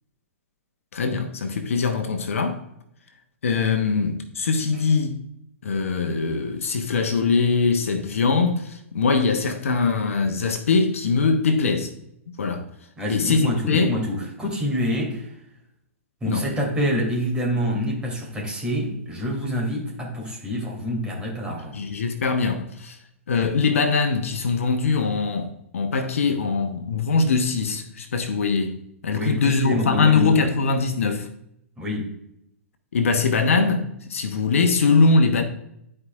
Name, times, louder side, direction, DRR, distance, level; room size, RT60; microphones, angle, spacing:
voice 1, 0.9-2.6 3.4-5.2 5.6-11.9 12.4-12.6 13.1-14.0 16.2-16.5 21.7-23.0 23.3-28.8 29.0-31.3 32.9-35.4, left 4 dB, 70° left, 1.0 m, -22 dB
voice 2, 13.0-15.3 16.2-21.8 29.1-30.5 31.8-32.1, equal, 10° right, 2.7 m, -27 dB
12.5 x 4.9 x 2.4 m
hypercardioid pair, 115°, 8 cm